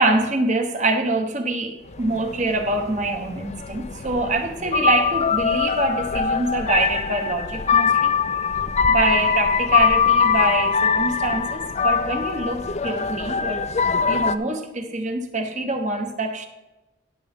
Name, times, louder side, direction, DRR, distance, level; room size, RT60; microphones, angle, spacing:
voice 1, 0.0-8.1 8.9-13.6 14.1-16.5, right 2 dB, 40° right, 1.1 m, -25 dB
sound 1, 1.9-14.4, left 6 dB, 35° left, 0.4 m, -22 dB
16.0 x 7.0 x 3.6 m
head